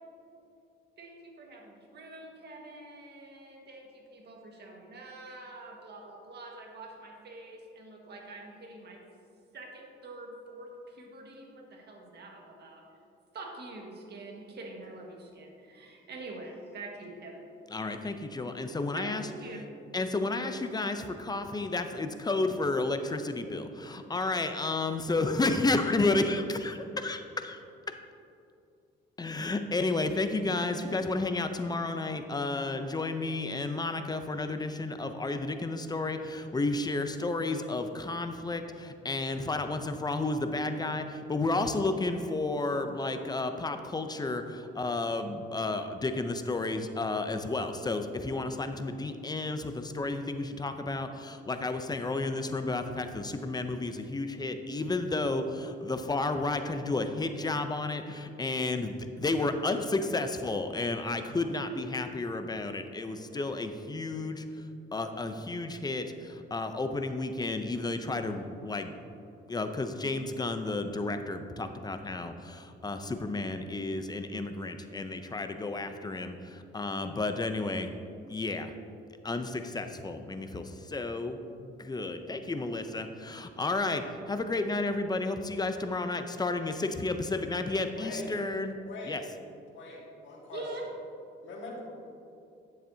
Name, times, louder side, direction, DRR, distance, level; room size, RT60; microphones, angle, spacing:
voice 1, 1.0-9.0 9.5-12.8 13.3-17.4 18.9-19.1 19.4-19.6 90.5-90.8, right 2 dB, 55° right, 0 dB, 1.6 m, -45 dB
voice 2, 17.7-19.2 19.9-27.6 29.2-64.4 64.9-68.9 69.5-77.9 78.3-78.7 79.2-88.7 89.1-89.2, left 2 dB, 20° left, 8 dB, 0.6 m, -32 dB
voice 3, 87.9-88.3 88.9-89.2 89.7-90.7 91.4-91.9, left 2 dB, 70° left, -1 dB, 1.7 m, -42 dB
10.0 x 7.2 x 2.7 m, 2.6 s
cardioid pair, 90°, 20 cm